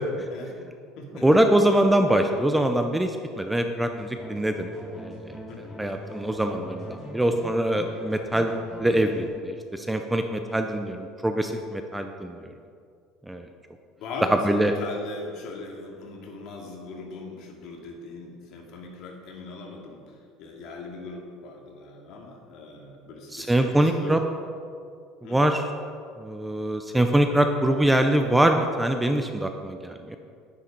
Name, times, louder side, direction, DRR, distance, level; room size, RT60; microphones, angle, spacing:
voice 1, 0.3-0.7 1.0-1.3 5.5-5.7 10.5-10.7 14.0-24.2 25.2-25.4, left 3 dB, 55° left, 0 dB, 2.3 m, -40 dB
voice 2, 1.2-8.5 8.8-12.4 13.3-13.5 14.4-14.7 23.3-24.2 25.3-25.7 26.2-30.2, right 1 dB, 5° right, 6 dB, 0.5 m, -24 dB
sound 1, 3.9-9.3, right 1 dB, 15° left, 3.0 m, -41 dB
10.0 x 10.0 x 5.3 m, 2.3 s
cardioid pair, 155°, 0 cm